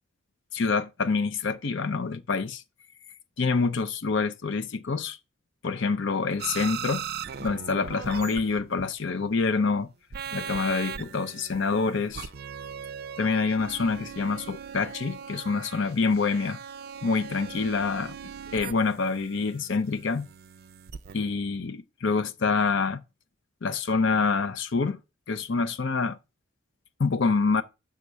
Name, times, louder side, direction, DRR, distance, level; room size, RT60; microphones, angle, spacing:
voice 1, 0.5-2.6 3.4-5.2 5.6-7.1 7.4-9.9 10.3-12.3 13.2-16.6 17.0-18.2 18.5-20.3 21.1-23.0 23.6-25.0 25.3-26.2 27.0-27.6, left 4 dB, 60° left, 0.6 m, -26 dB
sound 1, 6.4-8.9 10.1-21.1, right 7 dB, 50° right, 0.4 m, -39 dB
6.7 x 3.6 x 6.1 m
head